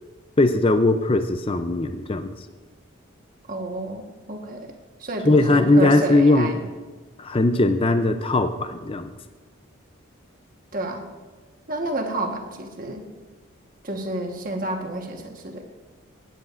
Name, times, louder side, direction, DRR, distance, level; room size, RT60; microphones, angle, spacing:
voice 1, 0.4-2.3 5.2-6.5 7.2-9.1, left 2 dB, 25° left, 8 dB, 0.5 m, -19 dB
voice 2, 3.5-4.7 5.0-6.6 10.7-11.0 11.7-13.0 13.8-15.6, right 2 dB, 40° right, 3 dB, 1.3 m, -30 dB
17.0 x 9.6 x 2.5 m, 1.3 s
head